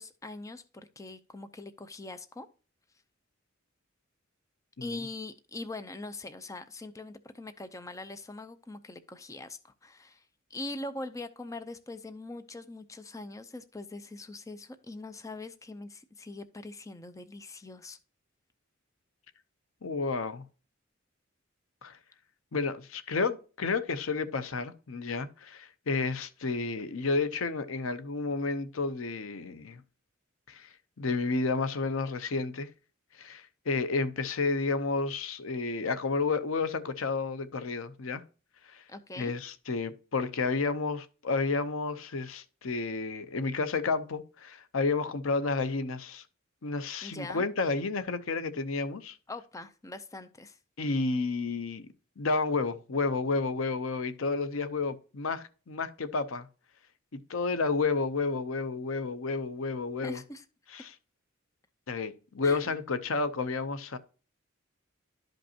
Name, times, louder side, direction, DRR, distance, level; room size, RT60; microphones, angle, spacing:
voice 1, 0.0-2.5 4.8-10.2 10.5-18.0 38.9-39.3 47.0-47.5 49.3-50.6 60.0-60.5 62.4-62.7, left 2 dB, 15° left, 0.5 m, -42 dB
voice 2, 19.8-20.4 21.8-22.0 22.5-29.8 30.5-30.7 31.0-32.7 33.2-38.2 38.7-38.8 39.2-46.2 46.6-49.2 50.8-51.9 52.2-56.5 57.1-60.2 60.7-60.9 61.9-64.0, left 4 dB, 80° left, 0.7 m, -31 dB
11.5 x 5.3 x 2.8 m
head